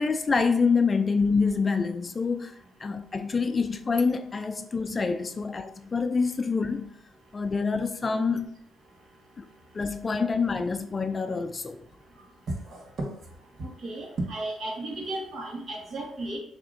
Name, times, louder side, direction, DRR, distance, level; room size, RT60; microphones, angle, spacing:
voice 1, 0.0-2.5 2.8-6.9 7.3-8.5 9.4-9.5 9.7-11.8, left 4 dB, 30° left, 0.3 m, -26 dB
voice 2, 12.7-13.1 13.6-16.4, right 2 dB, 55° right, 1.4 m, -34 dB
7.0 x 2.9 x 2.5 m
cardioid pair, 90°, 0 cm